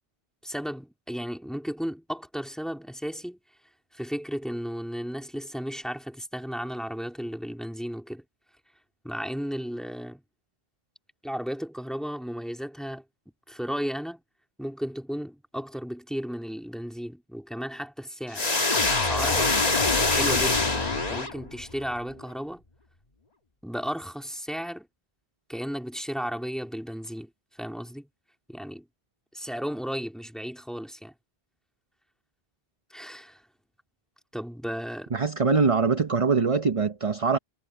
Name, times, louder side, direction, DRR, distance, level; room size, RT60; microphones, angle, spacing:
voice 1, 0.4-3.4 3.9-8.2 9.0-10.2 11.2-13.0 13.5-14.2 14.6-19.6 19.9-22.6 23.6-24.9 25.5-28.1 28.5-28.8 29.3-31.1 32.9-33.4 34.3-35.1, equal, ahead, 2.2 m, -34 dB
sound 1, 18.3-21.7, left 3 dB, 40° left, 1.7 m, -24 dB
voice 2, 35.1-37.4, right 4 dB, 35° right, 0.9 m, -23 dB
omnidirectional pair, 1.0 m